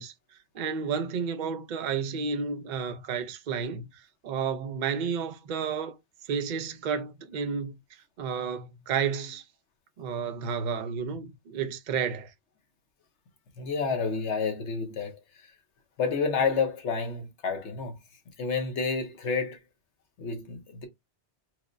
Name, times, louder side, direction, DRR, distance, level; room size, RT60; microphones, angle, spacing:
voice 1, 0.0-6.0 6.2-7.8 8.2-9.4 10.0-12.3, right 6 dB, 50° right, 0.6 m, -31 dB
voice 2, 13.6-15.2 16.0-18.0 18.4-19.6 20.2-20.9, left 5 dB, 80° left, 1.2 m, -29 dB
4.6 x 2.1 x 2.5 m
omnidirectional pair, 1.2 m